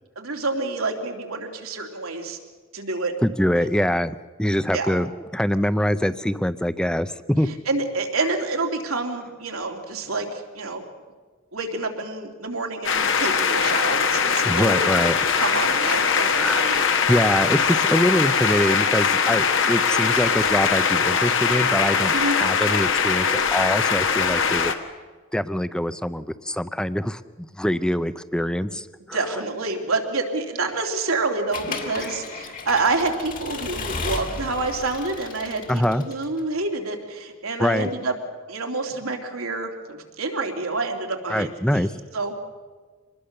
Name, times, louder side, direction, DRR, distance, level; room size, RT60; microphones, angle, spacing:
voice 1, 0.2-2.4 2.7-3.1 4.7-4.9 7.7-10.8 11.5-14.8 15.4-16.8 22.1-22.4 29.1-38.1 38.5-41.9 42.1-42.3, right 3 dB, 80° right, 3 dB, 2.9 m, -28 dB
voice 2, 3.2-7.5 14.4-15.1 16.3-24.7 25.3-29.2 32.0-32.1 35.7-36.0 37.6-37.9 41.3-41.9, equal, 5° left, 14 dB, 0.6 m, -24 dB
sound 1, 12.8-24.7, left 6 dB, 60° left, 1.4 m, -21 dB
Accelerating revving vroom / Mechanisms, 31.5-36.4, left 3 dB, 40° left, 2.0 m, -34 dB
25.0 x 20.5 x 6.7 m, 1.4 s
head